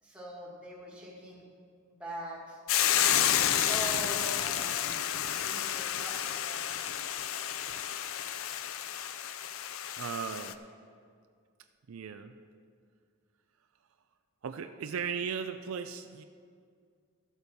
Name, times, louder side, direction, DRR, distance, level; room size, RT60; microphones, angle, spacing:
voice 1, 0.0-1.5 1.9-2.6 3.2-6.6, equal, 5° right, -3 dB, 1.7 m, -43 dB
Hiss / Boiling, 2.7-10.5, left 10 dB, 65° left, 0.4 m, -30 dB
voice 2, 10.0-10.6 11.9-12.3 14.4-16.2, right 6 dB, 70° right, 8 dB, 0.4 m, -36 dB
13.0 x 7.9 x 4.2 m, 2.2 s
head